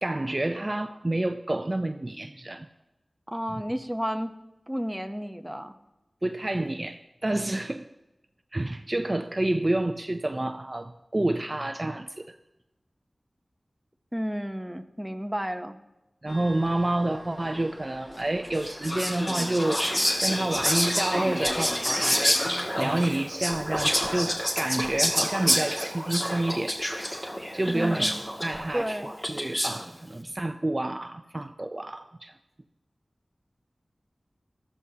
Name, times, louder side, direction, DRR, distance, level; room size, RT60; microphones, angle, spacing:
voice 1, 0.0-2.7 6.2-7.9 8.5-12.4 16.2-19.9 20.2-26.8 27.5-28.1 28.4-29.0 29.3-32.3, right 1 dB, 35° right, 7 dB, 0.5 m, -29 dB
voice 2, 3.3-4.4 4.7-5.7 14.1-15.8 27.7-28.3 28.7-29.1, equal, 10° right, 7 dB, 0.8 m, -32 dB
Train, 16.3-22.7, left 1 dB, 50° left, 1.9 m, -36 dB
Whispering, 18.5-29.9, equal, 20° left, 2.2 m, -28 dB
18.5 x 13.5 x 2.9 m, 0.99 s
wide cardioid pair, 45°, 0 cm